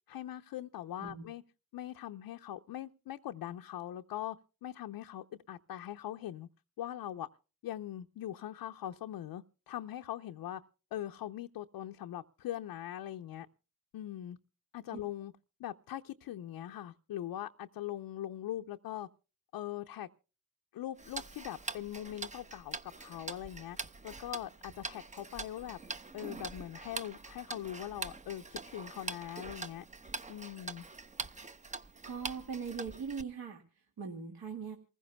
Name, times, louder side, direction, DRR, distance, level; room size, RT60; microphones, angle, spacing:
voice 1, 0.1-1.4 1.7-4.4 4.6-6.5 6.8-7.3 7.6-10.6 10.9-13.5 13.9-14.4 14.7-15.3 15.6-19.1 19.5-20.1 20.7-23.8 24.0-25.8 26.1-29.8 30.3-30.8, left 12 dB, 65° left, 0.7 m, -41 dB
Tick-tock, 21.0-33.2, right 3 dB, 20° right, 0.7 m, -44 dB
voice 2, 32.0-34.8, right 6 dB, 65° right, 2.1 m, -41 dB
28.0 x 15.5 x 2.2 m
supercardioid pair, 60°, 39 cm